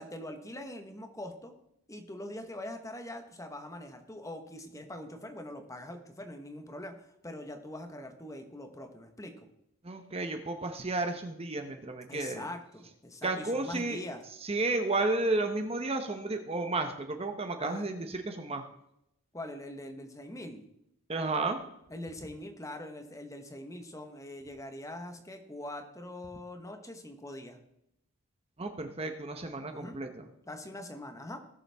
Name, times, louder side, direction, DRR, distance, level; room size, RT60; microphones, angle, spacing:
voice 1, 0.0-1.5 1.9-7.0 7.2-9.5 12.1-14.2 17.6-17.9 19.3-20.6 21.9-27.6 29.7-30.0 30.5-31.4, left 1 dB, 15° left, 5 dB, 1.1 m, -43 dB
voice 2, 9.8-12.4 13.2-14.0 14.4-18.6 21.1-21.6 28.6-30.2, right 2 dB, 25° right, 6 dB, 0.8 m, -32 dB
18.5 x 7.0 x 3.5 m, 0.79 s
head